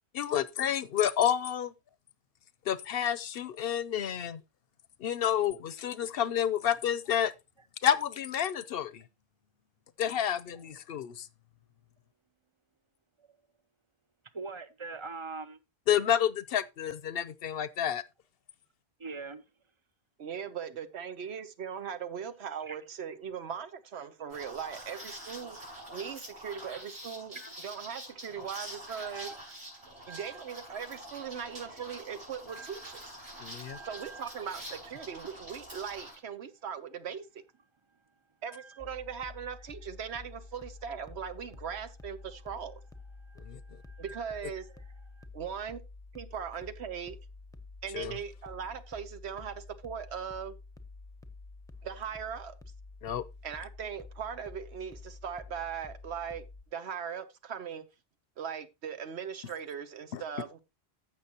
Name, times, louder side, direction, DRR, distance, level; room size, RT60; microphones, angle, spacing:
voice 1, 0.2-1.7 2.7-4.4 5.0-7.3 7.8-9.0 10.0-11.3 15.9-18.0 33.4-33.8 43.5-43.6 47.9-48.1 53.0-53.2 60.1-60.2, left 9 dB, 65° left, 0.8 m, -29 dB
voice 2, 14.3-15.6 19.0-19.4 22.6-22.8 27.4-27.5 28.3-28.4 29.0-30.4 32.5-32.9 33.2-34.2 34.9-35.1 38.5-38.9 43.2-44.4 45.1-45.3, right 4 dB, 35° right, 0.6 m, -45 dB
voice 3, 20.2-25.6 25.9-27.4 27.6-29.3 30.1-33.0 33.8-37.4 38.4-42.8 44.0-44.7 45.3-45.8 46.1-47.2 47.8-50.6 51.8-52.6 53.4-56.5 56.7-57.8 58.4-60.6, right 7 dB, 80° right, 1.1 m, -39 dB
Liquid, 24.3-36.2, equal, 65° right, 5.4 m, -46 dB
sound 1, 38.8-56.6, left 3 dB, 5° left, 0.7 m, -49 dB
14.5 x 6.1 x 2.9 m
omnidirectional pair, 1.1 m